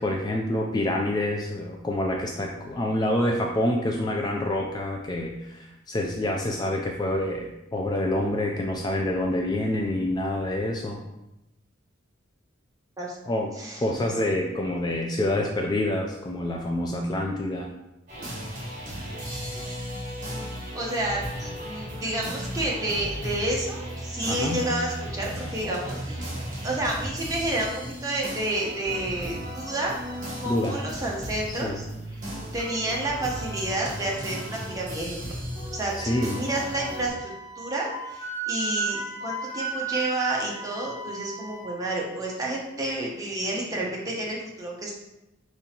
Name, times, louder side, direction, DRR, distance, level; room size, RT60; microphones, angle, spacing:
voice 1, 0.0-11.0 13.3-13.5 13.8-17.7 24.3-24.7 30.4-30.8 31.5-31.8 35.9-36.4, left 1 dB, 20° left, 1 dB, 0.3 m, -27 dB
sound 1, 18.1-37.1, equal, 40° right, 1.4 m, -36 dB
voice 2, 20.7-26.3 26.6-30.0 30.4-31.8 32.1-35.3 35.7-44.9, right 1 dB, 20° right, -3 dB, 0.9 m, -30 dB
Wind instrument woodwind instrument, 35.9-41.7, right 3 dB, 35° left, 1.2 m, -35 dB
4.8 x 3.8 x 2.9 m, 0.93 s
head